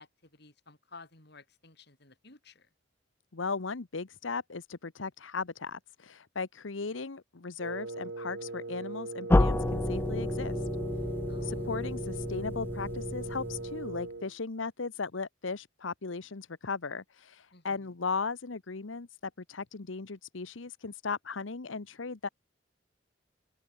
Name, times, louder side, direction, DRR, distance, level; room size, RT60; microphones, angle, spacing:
voice 1, 0.0-2.7 11.3-11.7 17.5-17.9, left 3 dB, 55° left, 4.8 m, -54 dB
voice 2, 3.3-10.6 11.4-19.1 19.5-22.3, left 4 dB, 75° left, 1.0 m, -37 dB
Wind instrument woodwind instrument, 7.6-14.3, right 3 dB, 65° right, 1.2 m, -40 dB
sound 1, 9.3-14.1, left 1 dB, 10° left, 0.3 m, -30 dB
head